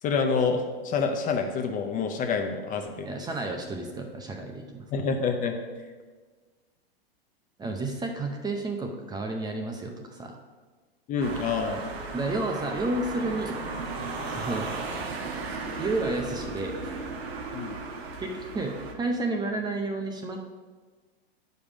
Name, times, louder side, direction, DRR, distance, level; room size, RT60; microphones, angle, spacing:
voice 1, 0.0-3.1 4.9-5.6 11.1-11.9 17.5-17.8, left 5 dB, 25° left, 5 dB, 0.7 m, -27 dB
voice 2, 3.0-4.9 7.6-10.4 12.1-13.6 14.3-14.8 15.8-16.8 18.2-20.4, right 2 dB, 15° right, 3 dB, 0.7 m, -31 dB
sound 1, 11.2-18.9, right 3 dB, 90° right, 1.4 m, -35 dB
8.7 x 5.4 x 4.9 m, 1.4 s
hypercardioid pair, 135°, 30 cm